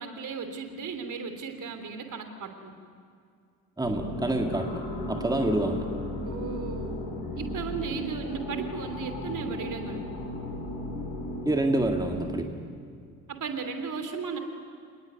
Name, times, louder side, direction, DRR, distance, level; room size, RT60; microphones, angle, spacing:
voice 1, 0.0-2.7 6.2-10.1 13.3-14.4, right 5 dB, 40° right, 7 dB, 3.2 m, -36 dB
sound 1, 3.8-12.4, left 1 dB, 50° left, 6.3 m, -35 dB
voice 2, 3.8-5.9 11.4-12.5, right 2 dB, 10° right, 3 dB, 2.1 m, -27 dB
27.0 x 20.0 x 9.5 m, 2.3 s
figure-of-eight pair, 50°, 45 cm